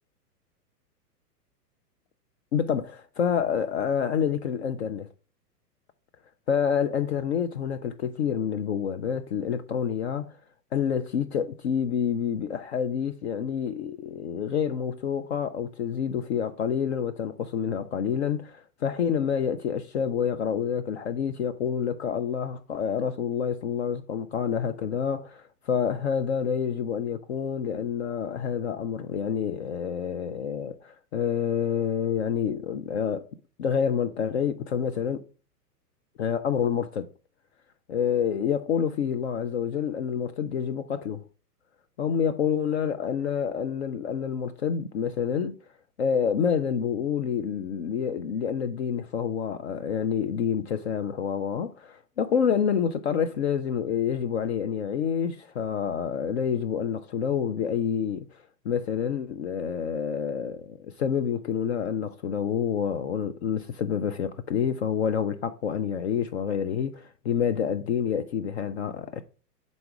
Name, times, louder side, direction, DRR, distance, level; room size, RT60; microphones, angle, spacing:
voice 1, 2.5-5.1 6.5-10.4 10.7-33.3 33.6-35.3 36.2-37.1 37.9-41.3 42.0-45.6 46.0-58.3 58.6-69.2, left 7 dB, 45° left, 0.5 m, -28 dB
6.8 x 4.1 x 4.6 m
figure-of-eight pair, 105°, 49 cm